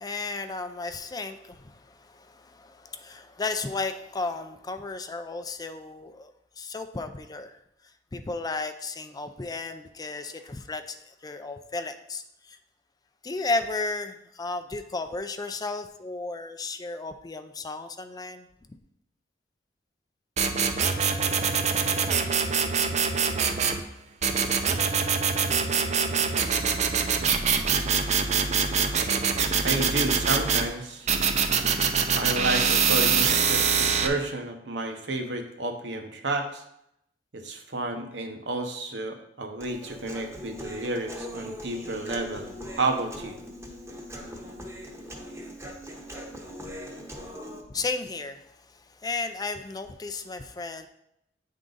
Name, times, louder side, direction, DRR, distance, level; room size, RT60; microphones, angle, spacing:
voice 1, 0.0-7.6 8.1-12.6 13.2-18.5 47.7-50.9, left 3 dB, 20° left, 8 dB, 0.4 m, -34 dB
sound 1, 20.4-23.8 24.2-30.7 31.1-34.1, right 6 dB, 40° right, 0.5 m, -24 dB
voice 2, 29.6-31.1 32.1-36.6 37.3-43.4, right 2 dB, 85° right, 4 dB, 0.9 m, -31 dB
Human voice, 39.6-47.6, equal, 15° right, 0.9 m, -40 dB
9.0 x 3.7 x 3.9 m, 0.78 s
head